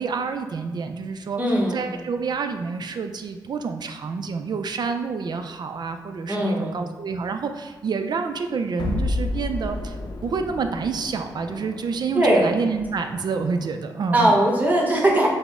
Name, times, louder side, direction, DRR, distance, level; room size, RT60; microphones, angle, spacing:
voice 1, 0.0-1.4 1.7-9.9 10.2-14.4, right 5 dB, 60° right, 7 dB, 0.4 m, -28 dB
voice 2, 1.4-1.9 6.3-6.7 12.1-12.6 14.1-15.3, right 1 dB, 20° right, -3 dB, 1.0 m, -20 dB
sound 1, 8.8-13.9, left 2 dB, 65° left, 0.6 m, -32 dB
4.9 x 2.1 x 3.5 m, 1.3 s
cardioid pair, 60°, 8 cm